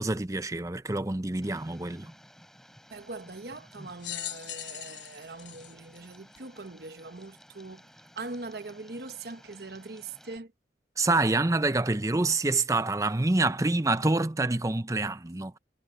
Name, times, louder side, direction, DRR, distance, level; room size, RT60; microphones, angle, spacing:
voice 1, 0.0-2.1 11.0-15.6, right 2 dB, 20° right, 0.6 m, -27 dB
Tick, 1.4-10.4, equal, 5° left, 3.1 m, -55 dB
voice 2, 2.9-7.9 8.2-10.5, right 3 dB, 60° right, 1.1 m, -41 dB
sound 1, 4.0-6.7 7.4-7.5 8.6-8.7, left 12 dB, 80° left, 1.1 m, -40 dB
head